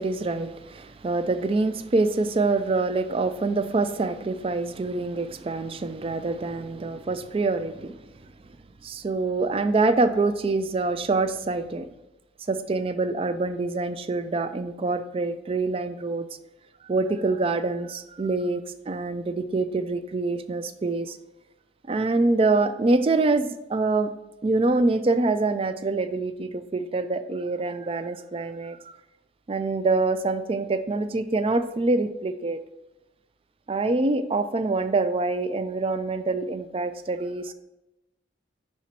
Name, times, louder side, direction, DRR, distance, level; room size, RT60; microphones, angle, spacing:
voice 1, 0.0-7.9 8.8-11.8 12.5-16.3 16.8-21.2 21.9-24.1 24.4-28.8 29.5-32.6 33.7-37.5, right 3 dB, 30° right, 11 dB, 0.4 m, -25 dB
5.9 x 4.4 x 4.3 m, 0.95 s
head